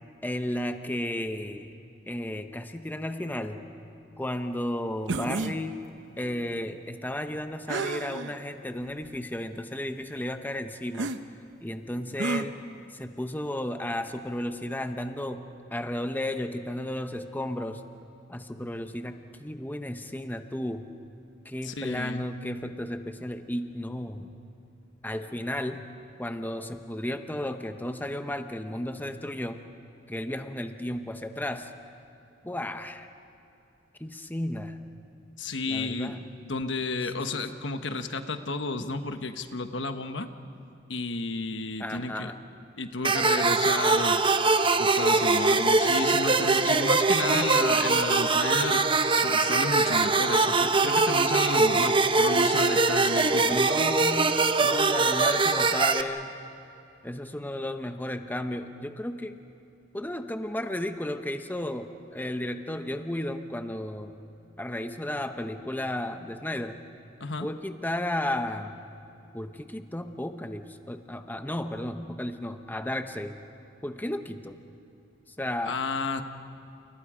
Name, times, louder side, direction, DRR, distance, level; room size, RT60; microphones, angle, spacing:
voice 1, 0.2-1.7 2.1-3.6 4.2-5.9 6.2-11.2 11.6-12.7 12.9-15.4 15.7-17.9 18.3-20.9 21.4-24.3 25.0-25.9 26.2-29.6 30.1-31.7 32.4-33.1 34.0-34.8 35.7-36.2 37.2-37.4 41.8-42.4 53.4-56.4 57.0-59.4 59.9-64.1 64.6-66.8 67.4-68.8 69.3-73.4 73.8-74.6 75.4-75.8, left 1 dB, 10° left, 7 dB, 0.8 m, -33 dB
sound 1, 5.1-5.5 7.7-8.3 9.0-9.1 10.9-11.2 12.2-12.5, right 3 dB, 75° right, 0.9 m, -30 dB
voice 2, 21.6-22.2 35.4-36.2 36.4-40.3 40.9-42.3 42.8-44.2 44.8-48.8 49.1-53.6 67.2-67.5 75.6-76.2, left 3 dB, 70° left, 8 dB, 1.2 m, -32 dB
sound 2, 43.0-56.0, right 3 dB, 25° right, 0.9 m, -22 dB
30.0 x 30.0 x 5.0 m, 2.6 s
head